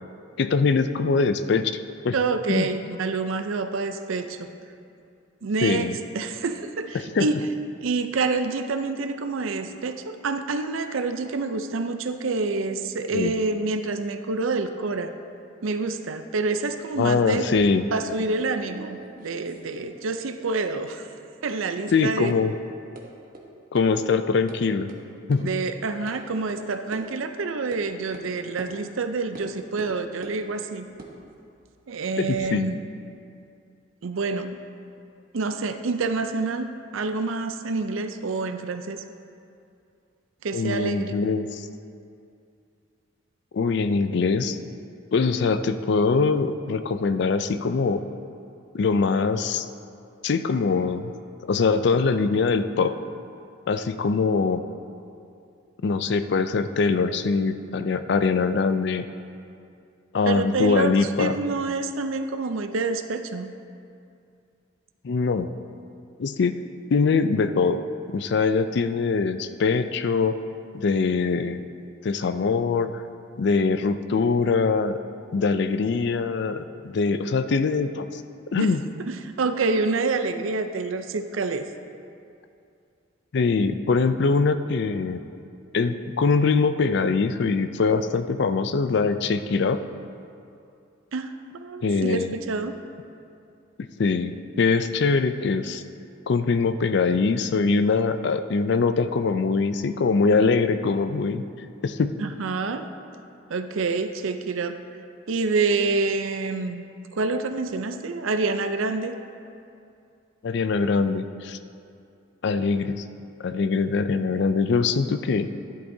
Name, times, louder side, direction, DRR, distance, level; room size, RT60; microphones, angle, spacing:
voice 1, 0.4-1.7 2.0-2.1 2.5-2.7 5.6-6.0 7.1-7.3 13.1-13.3 17.0-17.8 21.9-22.5 23.7-24.9 25.3-25.5 32.2-32.7 40.5-41.7 43.5-44.6 45.1-48.0 48.7-49.7 50.2-51.1 51.4-53.0 53.7-54.6 55.8-59.0 60.1-61.4 65.0-65.5 66.2-66.6 66.9-67.8 68.1-70.4 70.7-71.6 72.0-73.0 73.4-75.0 75.3-78.2 78.5-78.8 83.3-85.2 85.7-89.8 91.8-92.3 94.0-95.8 96.3-101.4 101.8-102.1 110.4-111.6 112.4-113.0 113.4-115.5, left 4 dB, 60° left, 10 dB, 0.4 m, -23 dB
voice 2, 2.1-4.5 5.4-7.4 7.8-15.1 15.6-17.5 17.9-21.1 21.4-22.4 25.4-30.9 31.9-32.8 34.0-34.6 35.3-39.0 40.4-41.1 60.3-63.5 78.6-78.7 79.0-81.7 91.1-92.7 102.2-102.9 103.5-104.8 105.3-106.8 107.1-109.2, right 3 dB, 85° right, 8 dB, 0.5 m, -27 dB
sound 1, 17.3-20.1 20.4-21.1 21.5-21.6 21.9-22.0 22.3-22.4 23.0-23.1 23.3-23.4 23.8-23.9 24.2-24.6 24.9-25.0 25.3-25.4 26.1-26.2 26.5-26.6 26.9-27.0 27.7-27.8 28.1-28.3 28.6-28.7 29.3-29.5 29.8-30.4 30.9-32.4, right 2 dB, 45° right, 1.0 m, -45 dB
11.5 x 10.5 x 2.7 m, 2.5 s
head